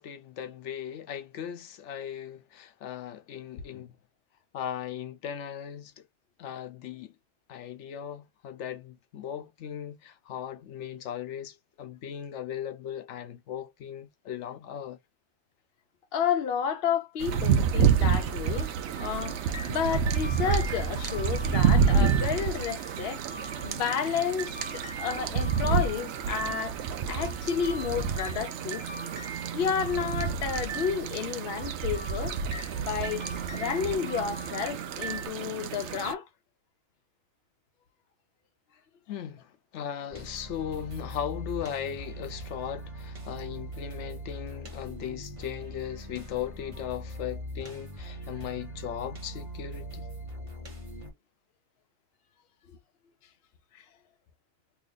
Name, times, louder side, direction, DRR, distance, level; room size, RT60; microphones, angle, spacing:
voice 1, 0.0-3.9 4.5-6.0 6.4-7.1 7.5-15.0 39.1-50.1, left 9 dB, 85° left, 1.0 m, -38 dB
voice 2, 16.1-18.7 19.0-23.2 23.6-26.8 27.1-28.9 29.5-32.4 32.8-33.3 33.5-36.3 53.7-53.8, left 7 dB, 60° left, 0.9 m, -31 dB
sound 1, 17.2-36.1, right 6 dB, 80° right, 0.9 m, -29 dB
sound 2, 18.0-35.3, right 3 dB, 65° right, 1.3 m, -43 dB
sound 3, 40.1-51.1, equal, 30° right, 1.2 m, -41 dB
3.0 x 2.4 x 3.9 m
omnidirectional pair, 1.2 m